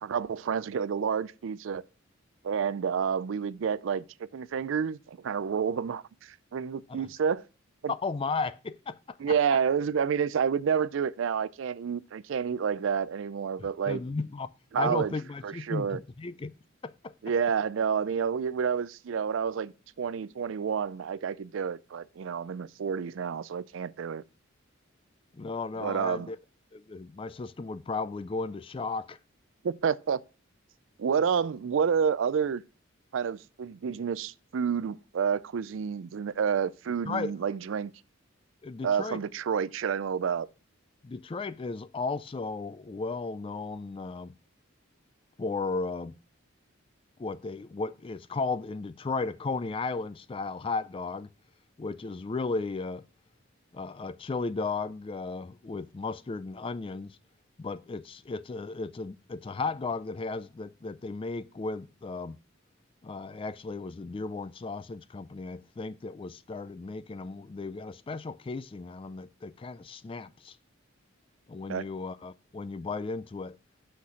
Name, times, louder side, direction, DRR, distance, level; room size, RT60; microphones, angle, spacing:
voice 1, 0.0-1.8 2.4-7.4 7.8-7.9 9.2-14.0 14.7-15.1 15.4-16.0 17.2-24.2 25.8-26.3 29.6-30.2 31.0-32.6 33.1-37.9 38.8-40.5 71.7-71.8, right 7 dB, 65° right, 0.4 m, -29 dB
voice 2, 7.9-9.3 13.6-14.5 14.8-16.6 16.8-17.1 25.3-26.4 26.7-29.2 37.1-37.3 38.6-39.2 41.0-44.3 45.4-46.2 47.2-51.3 51.8-53.1 53.7-57.2 57.6-62.4 63.0-70.6 71.5-73.6, left 3 dB, 25° left, 0.3 m, -35 dB
6.2 x 5.9 x 5.5 m
head